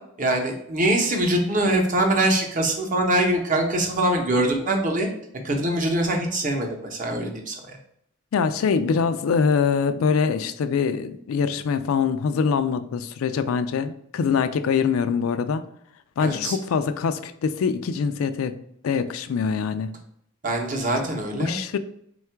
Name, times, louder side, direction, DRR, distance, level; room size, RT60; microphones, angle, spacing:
voice 1, 0.2-5.1 5.4-7.8 16.2-16.6 20.4-21.6, right 1 dB, 40° right, 0.7 m, -23 dB
voice 2, 8.3-15.6 16.2-18.6 18.8-19.9 21.4-21.8, left 6 dB, 85° left, 0.3 m, -24 dB
3.6 x 2.4 x 4.4 m
head